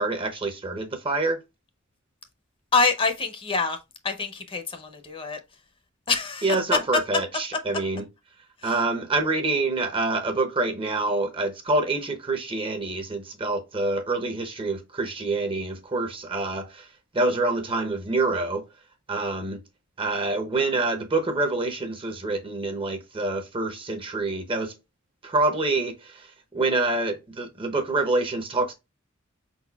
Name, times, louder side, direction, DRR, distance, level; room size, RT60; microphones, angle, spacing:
voice 1, 0.0-1.4 6.4-8.0 8.6-16.9 17.1-18.6 19.1-19.6 20.0-24.7 25.2-26.3 26.5-28.7, right 2 dB, 25° right, 0.7 m, -26 dB
voice 2, 2.7-3.8 4.0-5.4 6.1-6.4 8.6-8.8, left 4 dB, 25° left, 0.7 m, -25 dB
5.1 x 4.1 x 2.2 m
head